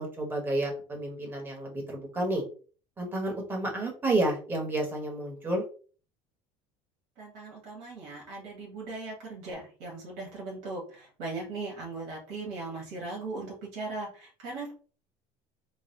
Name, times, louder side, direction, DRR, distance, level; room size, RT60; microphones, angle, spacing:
voice 1, 0.0-2.4 3.0-5.6, right 2 dB, 15° right, 0 dB, 1.4 m, -30 dB
voice 2, 7.2-14.7, right 3 dB, 75° right, -2 dB, 1.9 m, -38 dB
4.0 x 2.3 x 4.0 m, 0.39 s
cardioid pair, 150°, 12 cm